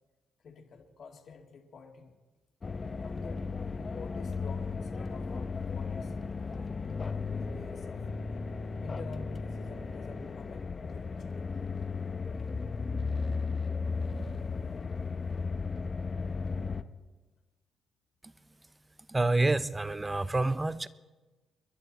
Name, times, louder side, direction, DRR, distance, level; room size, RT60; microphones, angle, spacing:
voice 1, 0.4-2.1 3.0-3.5 3.9-6.7 7.1-8.1 8.8-11.7, left 5 dB, 55° left, 3 dB, 2.2 m, -49 dB
sound 1, 2.6-16.8, left 4 dB, 35° left, 0.9 m, -35 dB
voice 2, 19.1-20.9, right 2 dB, 15° right, 15 dB, 0.7 m, -28 dB
29.0 x 11.0 x 4.2 m, 1.2 s
cardioid pair, 90°, 0 cm